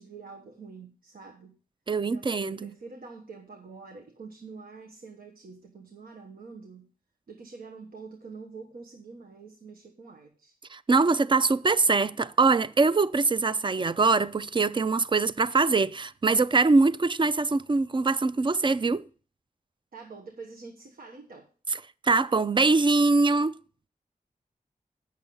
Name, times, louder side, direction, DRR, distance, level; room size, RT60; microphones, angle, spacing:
voice 1, 0.0-1.6 2.1-6.9 7.3-10.5 19.9-21.5, right 4 dB, 90° right, 1.1 m, -46 dB
voice 2, 1.9-2.7 10.7-19.0 22.0-23.5, right 3 dB, 35° right, 0.5 m, -23 dB
8.4 x 6.4 x 5.4 m
wide cardioid pair, 70°, 15 cm